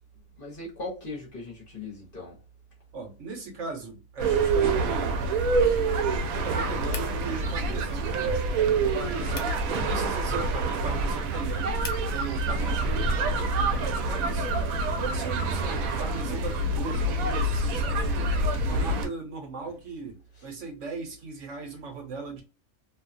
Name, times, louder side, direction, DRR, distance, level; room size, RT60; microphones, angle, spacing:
voice 1, 0.4-2.4 12.4-12.8 18.7-19.1, left 3 dB, 45° left, 1.1 m, -39 dB
voice 2, 2.9-5.3 6.3-11.8 12.1-14.6 15.0-22.4, right 4 dB, 65° right, 1.2 m, -38 dB
sound 1, 4.2-19.1, right 3 dB, 85° right, 1.0 m, -26 dB
sound 2, 6.9-12.1, left 6 dB, 80° left, 1.1 m, -46 dB
2.7 x 2.3 x 2.5 m
omnidirectional pair, 1.4 m